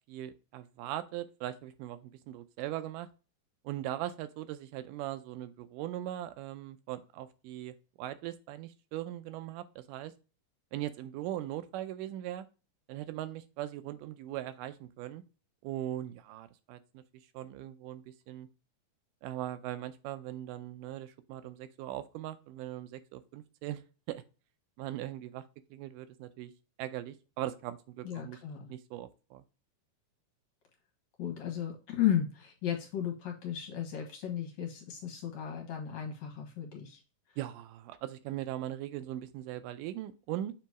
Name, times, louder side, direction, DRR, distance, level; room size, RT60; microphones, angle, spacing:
voice 1, 0.1-3.1 3.6-10.1 10.7-12.5 12.9-15.2 15.6-17.0 17.3-18.5 19.2-23.8 24.1-24.2 24.8-25.4 25.7-26.5 26.8-28.4 28.7-29.4 37.4-40.5, right 13 dB, 85° right, 11 dB, 2.1 m, -40 dB
voice 2, 28.0-28.7 31.2-37.0, left 10 dB, 65° left, 1 dB, 2.5 m, -34 dB
7.4 x 3.1 x 4.6 m, 0.33 s
omnidirectional pair, 3.7 m